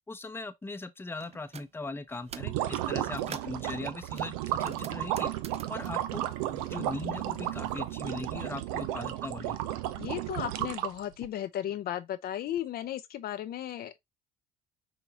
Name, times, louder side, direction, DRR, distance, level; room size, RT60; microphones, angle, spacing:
voice 1, 0.1-5.3 5.7-9.6, left 3 dB, 10° left, 0.7 m, -40 dB
sound 1, 1.2-1.7 2.1-2.6 3.0-3.6 4.2-7.1 7.4-8.5, right 7 dB, 35° right, 0.5 m, -47 dB
sound 2, 2.3-11.3, right 13 dB, 90° right, 0.5 m, -33 dB
voice 2, 10.0-14.0, left 11 dB, 60° left, 0.5 m, -35 dB
5.6 x 2.9 x 2.8 m
supercardioid pair, 65°, 18 cm